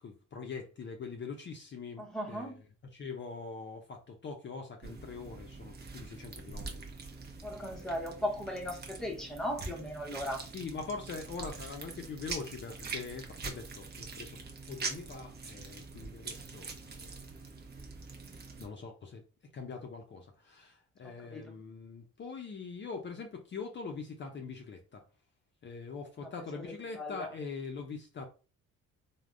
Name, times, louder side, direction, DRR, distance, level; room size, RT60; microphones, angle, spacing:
voice 1, 0.0-2.6 2.9-6.8 7.7-7.9 10.5-17.2 18.6-19.2 19.5-25.0 25.6-28.3, left 4 dB, 40° left, 0.5 m, -43 dB
voice 2, 2.0-2.6 7.4-10.4 21.0-21.5 26.4-26.5 27.0-27.3, equal, ahead, 0.7 m, -37 dB
sound 1, 4.8-18.7, right 4 dB, 35° right, 0.6 m, -44 dB
3.3 x 2.0 x 2.5 m
cardioid pair, 90°, 30 cm